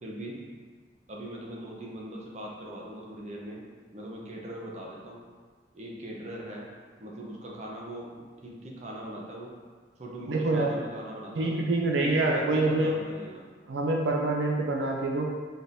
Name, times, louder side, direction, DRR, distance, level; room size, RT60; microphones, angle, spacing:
voice 1, 0.0-0.4 1.1-3.6 3.9-5.2 5.7-6.7 7.0-9.5 10.0-11.6 12.0-13.4, right 1 dB, 40° right, -2 dB, 0.7 m, -40 dB
voice 2, 10.3-10.8 11.4-13.0 13.7-15.3, right 2 dB, 75° right, -1 dB, 0.4 m, -26 dB
4.3 x 3.4 x 2.6 m, 1.5 s
head